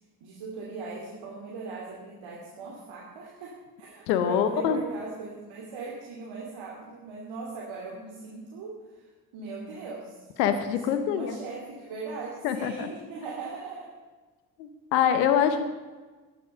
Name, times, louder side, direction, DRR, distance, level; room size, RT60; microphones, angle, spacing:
voice 1, 0.2-10.2 10.7-13.9, right 3 dB, 70° right, -3 dB, 2.9 m, -39 dB
voice 2, 4.1-4.8 10.4-11.4 12.4-12.9 14.6-15.6, left 8 dB, 90° left, 9 dB, 1.0 m, -24 dB
15.0 x 11.0 x 6.7 m, 1.3 s
hypercardioid pair, 45°, 48 cm